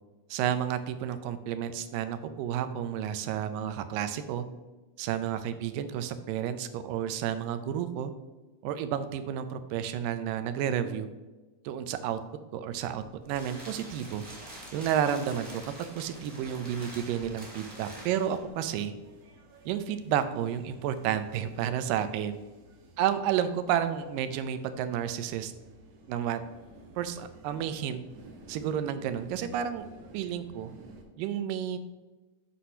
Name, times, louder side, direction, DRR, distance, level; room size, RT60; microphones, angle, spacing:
voice 1, 0.3-4.5 5.0-8.1 8.6-11.1 11.7-12.2 12.5-14.2 14.7-15.6 15.9-18.9 19.7-22.4 23.0-25.5 26.1-26.4 27.0-28.0 28.5-29.9 30.1-30.7 31.2-31.8, right 9 dB, 85° right, 10 dB, 2.3 m, -31 dB
sound 1, 12.9-18.5, right 1 dB, 15° right, 1.7 m, -46 dB
sound 2, 13.4-31.0, right 2 dB, 60° right, 1.8 m, -54 dB
7.9 x 4.2 x 5.5 m, 1.2 s
omnidirectional pair, 3.9 m